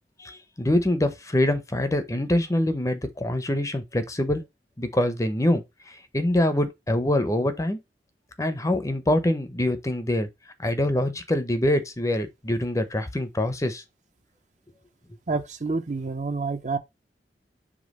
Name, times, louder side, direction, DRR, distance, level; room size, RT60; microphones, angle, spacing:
voice 1, 0.2-4.4 4.8-5.6 6.1-7.8 8.4-10.3 10.6-13.8, left 1 dB, 20° left, 0.7 m, -24 dB
voice 2, 15.3-16.8, right 3 dB, 45° right, 0.7 m, -28 dB
5.1 x 3.5 x 5.3 m
head